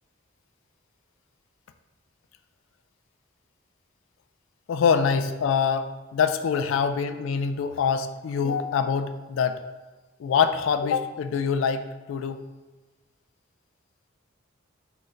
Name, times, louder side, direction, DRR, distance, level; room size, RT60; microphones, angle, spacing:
voice 1, 4.7-9.6 10.2-12.4, left 6 dB, 70° left, 9 dB, 0.3 m, -25 dB
3.9 x 2.6 x 4.2 m, 1.2 s
head